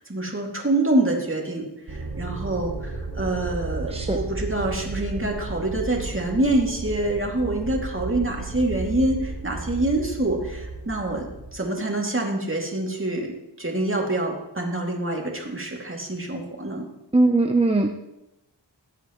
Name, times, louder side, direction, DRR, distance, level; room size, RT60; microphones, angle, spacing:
voice 1, 0.0-13.3 13.6-16.8, right 2 dB, 30° right, 0 dB, 2.5 m, -26 dB
sound 1, 1.9-11.5, right 3 dB, 70° right, 2.0 m, -33 dB
voice 2, 17.1-18.0, right 2 dB, 15° right, 3 dB, 0.7 m, -20 dB
18.5 x 8.3 x 3.1 m, 0.92 s
wide cardioid pair, 55°, 42 cm